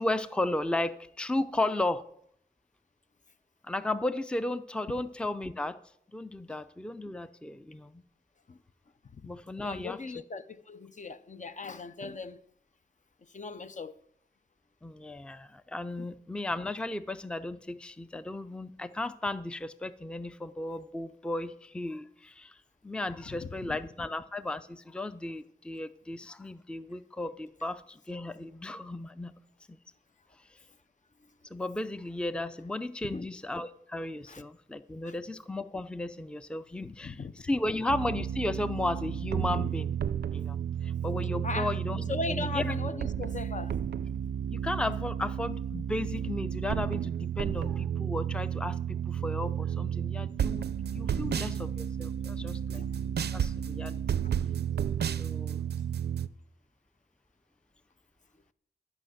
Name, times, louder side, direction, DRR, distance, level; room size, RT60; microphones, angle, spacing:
voice 1, 0.0-2.0 3.7-5.8 6.1-7.9 9.2-10.0 14.8-22.5 22.8-29.3 31.5-37.2 37.4-39.9 40.3-40.6 40.8-42.7 44.5-50.7 50.9-52.8 53.3-54.0 55.2-55.6, left 2 dB, 5° left, 0.5 m, -34 dB
voice 2, 9.6-12.4 13.2-13.9 16.0-16.1 23.3-23.8 33.0-33.3 34.3-34.4 35.1-35.2 36.8-37.3 41.4-41.7 42.1-43.8 51.1-51.4 52.4-52.5 52.7-53.0 54.7-54.9, left 3 dB, 45° left, 0.6 m, -38 dB
sound 1, 37.9-56.3, right 9 dB, 75° right, 0.4 m, -32 dB
12.5 x 5.8 x 7.7 m
wide cardioid pair, 65°, 17 cm